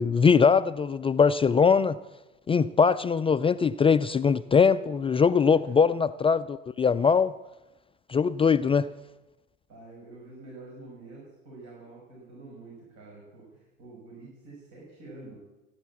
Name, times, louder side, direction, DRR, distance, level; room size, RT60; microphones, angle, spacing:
voice 1, 0.0-2.0 2.5-7.3 8.1-8.9, left 6 dB, 15° left, 13 dB, 0.4 m, -22 dB
voice 2, 5.5-5.9 9.7-15.4, right 2 dB, 55° right, -3 dB, 6.2 m, -47 dB
15.5 x 10.5 x 7.2 m, 1.0 s
hypercardioid pair, 80°, 33 cm